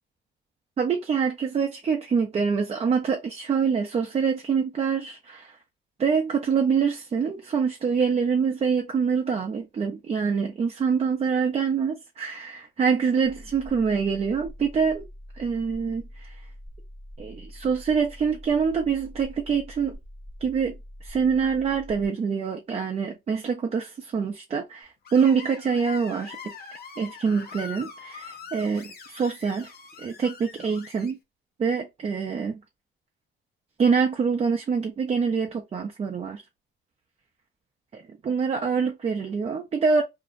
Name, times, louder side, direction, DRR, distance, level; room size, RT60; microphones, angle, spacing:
voice 1, 0.8-5.6 6.0-15.0 15.4-16.4 17.2-20.0 20.4-20.7 21.0-26.5 27.0-29.7 30.0-31.2 31.6-32.6 33.8-36.4 37.9-40.0, right 6 dB, 30° right, 0.4 m, -25 dB
sound 1, 13.2-22.1, equal, ahead, 0.7 m, -44 dB
Screech, 25.0-31.1, left 6 dB, 50° left, 0.6 m, -43 dB
2.5 x 2.0 x 2.4 m
cardioid pair, 90°, 20 cm